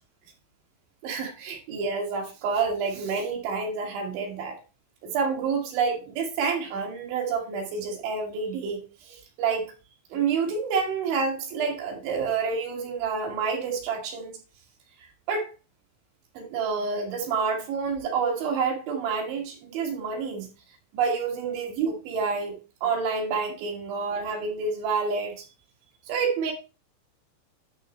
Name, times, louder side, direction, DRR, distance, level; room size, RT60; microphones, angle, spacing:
voice 1, 1.0-4.6 5.0-9.7 10.1-14.3 15.3-15.5 16.4-20.5 20.9-25.5 26.1-26.5, right 5 dB, 85° right, 4.8 m, -28 dB
11.0 x 6.6 x 3.1 m
omnidirectional pair, 5.2 m